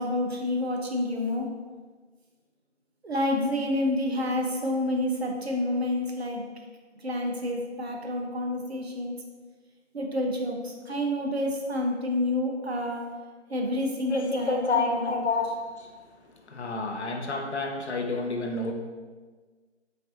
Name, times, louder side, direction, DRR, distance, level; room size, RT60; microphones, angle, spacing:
voice 1, 0.0-1.5 3.0-6.5 7.0-9.1 9.9-13.1 13.5-15.1, left 1 dB, 60° right, 1 dB, 0.5 m, -29 dB
voice 2, 14.1-18.7, left 3 dB, 65° left, 3 dB, 0.5 m, -29 dB
3.2 x 2.4 x 2.6 m, 1.4 s
figure-of-eight pair, 180°, 36 cm